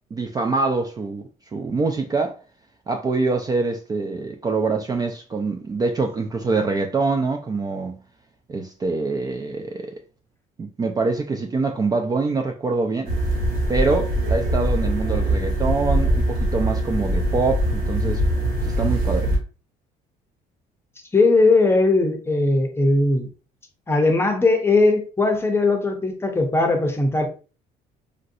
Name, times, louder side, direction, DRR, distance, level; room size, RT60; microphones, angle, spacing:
voice 1, 0.1-1.2 1.5-2.4 2.9-8.0 8.5-10.0 10.6-13.1 13.7-18.2 18.6-19.3, right 3 dB, 25° right, 0.3 m, -24 dB
sound 1, 13.0-19.4, right 1 dB, 60° right, 1.3 m, -22 dB
voice 2, 21.1-23.3 23.9-27.3, left 2 dB, 15° left, 0.6 m, -19 dB
3.1 x 2.5 x 2.6 m
cardioid pair, 110°, 17 cm